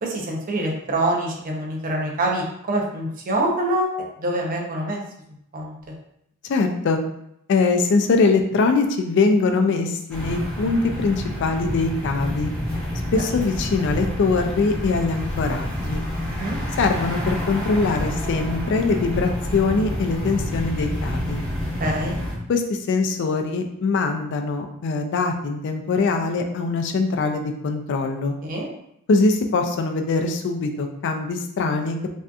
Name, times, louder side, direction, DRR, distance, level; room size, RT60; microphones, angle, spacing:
voice 1, 0.0-3.9 4.2-5.0 5.5-5.9 13.3-13.4 16.3-16.6 21.8-22.2 28.4-28.7, right 1 dB, 40° right, -1 dB, 0.5 m, -25 dB
voice 2, 6.4-7.0 7.5-12.5 13.1-16.0 16.8-21.4 22.5-28.4 29.1-32.0, left 3 dB, 55° left, 5 dB, 0.3 m, -22 dB
sound 1, 10.1-22.3, left 1 dB, 5° left, 0.7 m, -28 dB
2.6 x 2.3 x 2.2 m, 0.76 s
head